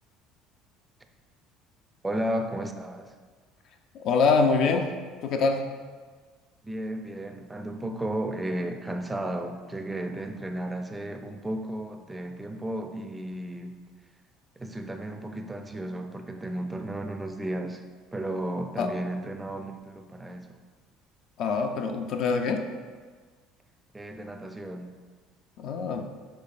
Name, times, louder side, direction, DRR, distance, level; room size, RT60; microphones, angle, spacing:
voice 1, 2.0-3.1 6.6-13.8 14.6-17.8 18.1-20.6 23.9-24.9, right 1 dB, 15° right, 6 dB, 0.4 m, -34 dB
voice 2, 3.9-4.9 5.2-5.6 18.8-18.9 21.4-22.6 25.6-26.0, left 4 dB, 60° left, 5 dB, 0.4 m, -24 dB
5.6 x 3.2 x 2.4 m, 1.5 s
hypercardioid pair, 80°, 0 cm